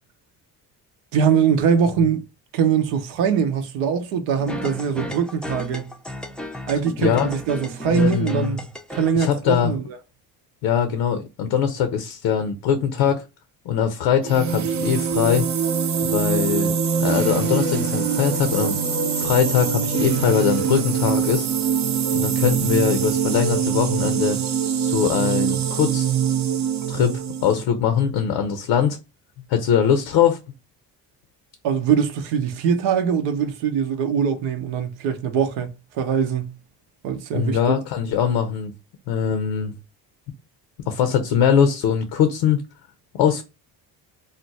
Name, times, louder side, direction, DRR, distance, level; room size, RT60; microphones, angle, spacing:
voice 1, 1.1-2.3 2.5-5.9 6.7-8.7 8.9-9.8 31.6-36.5 37.0-37.6, right 7 dB, 90° right, 0.7 m, -22 dB
sound 1, 4.4-9.3, left 1 dB, ahead, 0.4 m, -34 dB
voice 2, 7.9-8.6 9.1-9.7 10.6-13.3 13.7-15.5 16.0-18.8 19.1-21.5 22.1-24.4 24.8-26.1 26.9-29.0 29.5-30.4 37.3-38.7 39.1-39.7 40.9-42.6 43.1-43.4, left 8 dB, 85° left, 0.6 m, -21 dB
sound 2, 14.2-27.6, right 7 dB, 40° right, 0.6 m, -23 dB
2.5 x 2.1 x 3.9 m
supercardioid pair, 75°, 42 cm